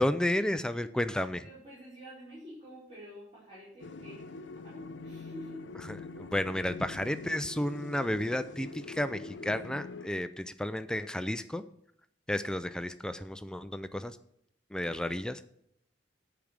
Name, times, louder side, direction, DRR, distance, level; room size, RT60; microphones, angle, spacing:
voice 1, 0.0-1.4 5.9-11.6 12.3-14.2 14.7-15.4, left 1 dB, 5° left, 11 dB, 0.4 m, -32 dB
voice 2, 1.4-5.6, equal, 35° right, -9 dB, 4.8 m, -49 dB
sound 1, 3.8-10.1, left 3 dB, 80° left, 0.6 m, -44 dB
10.5 x 4.9 x 7.4 m, 0.73 s
head